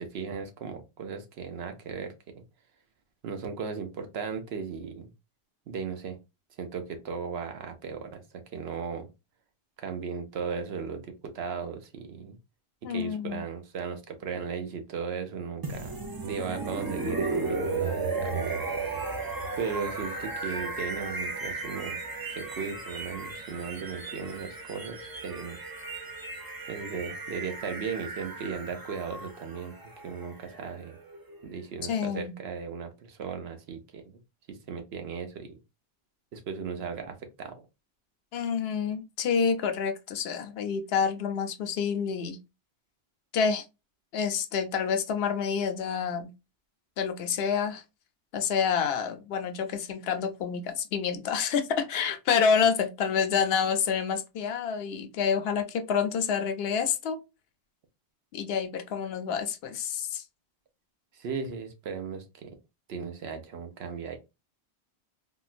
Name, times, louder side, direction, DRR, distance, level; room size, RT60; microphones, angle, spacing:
voice 1, 0.0-2.1 3.2-5.1 5.7-6.2 6.6-8.2 8.5-9.1 9.8-12.4 12.9-18.6 18.9-19.1 19.6-22.0 22.3-25.6 26.7-29.7 30.0-31.0 31.4-34.2 34.5-35.6 36.3-37.6 61.1-62.6 62.9-64.2, right 6 dB, 75° right, 0.9 m, -36 dB
voice 2, 12.8-13.4 31.9-32.4 38.3-42.4 43.3-43.6 44.1-46.3 47.0-47.8 48.3-57.2 58.3-60.2, left 6 dB, 70° left, 0.8 m, -28 dB
sound 1, 15.6-31.5, right 3 dB, 30° right, 0.4 m, -35 dB
3.7 x 2.2 x 2.4 m
omnidirectional pair, 1.1 m